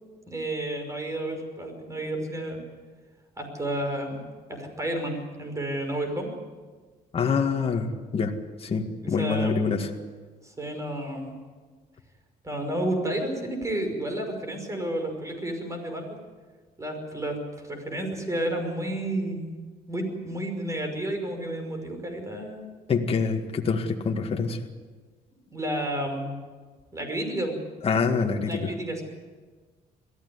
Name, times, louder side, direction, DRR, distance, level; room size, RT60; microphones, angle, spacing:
voice 1, 0.3-2.6 3.4-4.2 4.5-6.3 9.2-9.6 10.4-11.4 12.4-16.2 16.8-17.4 17.7-19.5 19.9-22.7 25.5-26.4 26.9-27.6 28.4-29.0, right 1 dB, 20° right, 5 dB, 5.7 m, -31 dB
voice 2, 7.1-8.3 8.6-9.9 22.9-24.7 27.8-28.7, left 5 dB, 35° left, 3 dB, 1.9 m, -26 dB
22.5 x 15.0 x 9.8 m, 1.4 s
cardioid pair, 110°, 17 cm